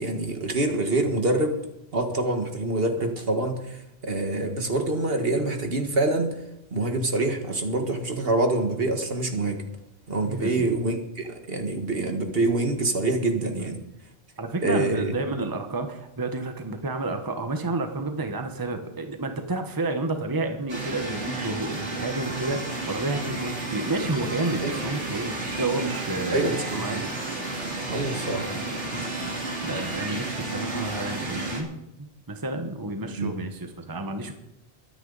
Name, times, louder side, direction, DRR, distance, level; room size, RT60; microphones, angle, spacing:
voice 1, 0.0-1.6 1.9-6.3 6.7-9.6 10.1-13.8 14.6-15.1 24.6-24.7 26.3-26.8 27.9-28.5 33.2-33.4, right 2 dB, 55° right, 5 dB, 1.9 m, -26 dB
voice 2, 10.2-10.8 13.6-13.8 14.4-27.1 28.9-29.0 29.6-31.7 32.0-34.3, right 2 dB, 20° right, 6 dB, 1.1 m, -30 dB
sound 1, 20.7-31.6, right 2 dB, 90° right, 2.8 m, -32 dB
23.0 x 9.5 x 4.0 m, 0.86 s
omnidirectional pair, 1.2 m